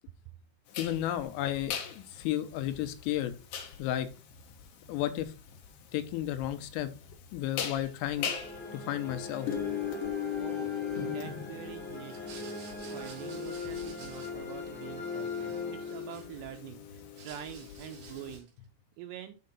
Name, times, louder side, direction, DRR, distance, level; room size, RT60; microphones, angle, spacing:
sound 1, 0.7-18.4, left 9 dB, 70° left, 2.1 m, -40 dB
voice 1, 0.8-3.3 3.8-4.1 4.9-5.3 5.9-6.9 7.3-8.3 8.7-9.5, left 12 dB, 85° left, 9 dB, 3.5 m, -33 dB
sound 2, 8.1-16.5, left 3 dB, 5° left, 1.4 m, -40 dB
voice 2, 10.4-18.5 19.0-19.4, right 11 dB, 85° right, 7 dB, 2.5 m, -46 dB
sound 3, 12.0-14.7 14.9-16.6 17.0-18.6, right 6 dB, 55° right, 3.5 m, -53 dB
7.7 x 4.8 x 5.5 m, 0.34 s
omnidirectional pair, 5.6 m